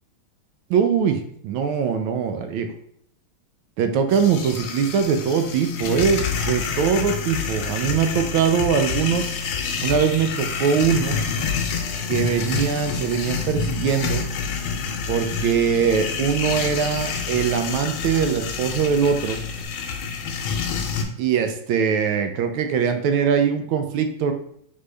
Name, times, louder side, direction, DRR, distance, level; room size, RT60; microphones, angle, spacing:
voice 1, 0.7-2.7 3.8-9.3 9.8-11.2 12.1-14.2 15.1-19.4 21.2-24.3, right 7 dB, 80° right, 7 dB, 1.3 m, -22 dB
sound 1, 4.1-21.0, left 5 dB, 75° left, 1.4 m, -28 dB
sound 2, 10.9-19.6, left 5 dB, 60° left, 1.0 m, -38 dB
3.9 x 3.6 x 3.2 m, 0.68 s
omnidirectional pair, 2.3 m